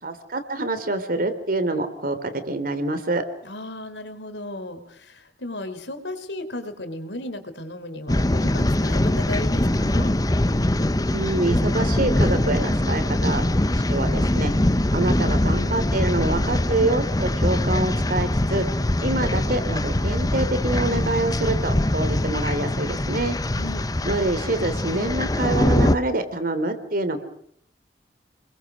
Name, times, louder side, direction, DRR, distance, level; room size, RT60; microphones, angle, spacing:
voice 1, 0.0-3.2 11.1-13.4 13.9-14.5 14.9-18.7 19.0-23.4 24.1-27.2, right 2 dB, 55° right, 10 dB, 3.5 m, -26 dB
voice 2, 3.4-10.1 23.5-23.8, left 1 dB, 75° left, 9 dB, 4.0 m, -35 dB
sound 1, 8.1-26.0, left 1 dB, 20° left, 0.9 m, -22 dB
29.5 x 22.0 x 6.4 m, 0.68 s
head